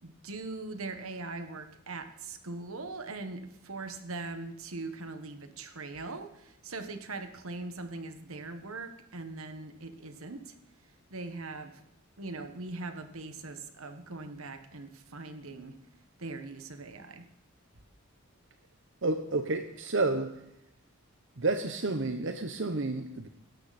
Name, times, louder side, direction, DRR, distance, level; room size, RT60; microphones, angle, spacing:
voice 1, 0.0-10.5 11.1-11.8 12.2-15.8 16.2-17.3, right 3 dB, 75° right, 8 dB, 1.6 m, -41 dB
voice 2, 19.0-20.3 21.4-23.3, right 3 dB, 60° right, 7 dB, 0.9 m, -30 dB
17.0 x 13.0 x 4.3 m, 0.85 s
head